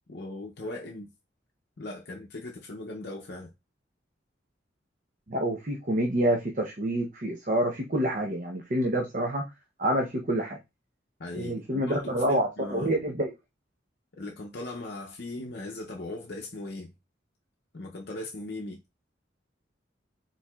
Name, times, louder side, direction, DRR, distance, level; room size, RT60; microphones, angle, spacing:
voice 1, 0.1-1.1 1.8-3.5 11.2-12.9 14.1-16.9 17.7-18.8, left 2 dB, 55° left, 0.6 m, -39 dB
voice 2, 5.3-9.5 9.8-10.6 11.3-13.3, right 1 dB, 45° right, 0.7 m, -27 dB
4.6 x 3.9 x 2.3 m
head